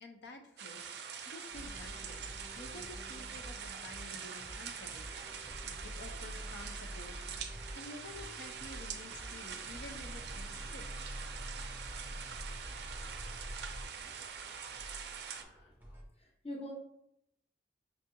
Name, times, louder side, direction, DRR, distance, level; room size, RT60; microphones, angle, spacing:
voice 1, 0.0-2.3 2.6-7.1 7.7-10.8, left 2 dB, 70° left, 4 dB, 0.5 m, -51 dB
sound 1, 0.6-15.4, right 7 dB, 65° right, 0.4 m, -45 dB
sound 2, 1.5-16.1, equal, 10° right, 0.6 m, -47 dB
voice 2, 16.1-16.7, left 1 dB, 35° left, -3 dB, 0.9 m, -43 dB
5.3 x 2.3 x 2.8 m, 0.76 s
head